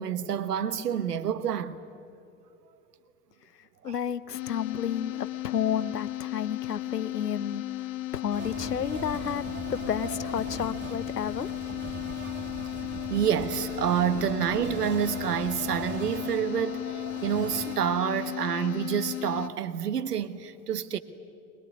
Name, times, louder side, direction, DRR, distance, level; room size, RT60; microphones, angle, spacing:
voice 1, 0.0-1.8 3.8-4.0 12.2-12.3 13.1-21.0, right 9 dB, 80° right, 1.4 m, -28 dB
voice 2, 3.8-7.6 8.1-9.4 9.7-11.5, left 8 dB, 90° left, 0.9 m, -31 dB
sound 1, 4.3-19.5, left 16 dB, 45° left, 1.2 m, -35 dB
sound 2, 8.3-17.7, right 6 dB, 25° right, 1.8 m, -40 dB
23.0 x 21.0 x 9.5 m
hypercardioid pair, 85°, 46 cm